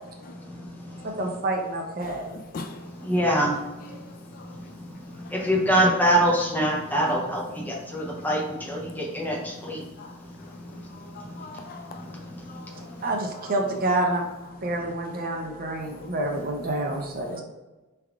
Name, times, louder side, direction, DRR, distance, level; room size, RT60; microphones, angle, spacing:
voice 1, 1.2-2.4 13.0-14.3 14.6-17.4, right 2 dB, 40° right, 0.6 m, -28 dB
voice 2, 2.0-2.9 3.3-3.5 3.9-4.1 4.3-5.5 8.1-8.3 8.9-9.0 9.6-13.0 13.3-13.6 15.1-16.1 17.2-17.4, left 4 dB, 40° left, 0.3 m, -44 dB
voice 3, 3.0-3.6 5.3-9.8, right 1 dB, 10° left, 0.8 m, -24 dB
4.6 x 3.4 x 2.4 m
head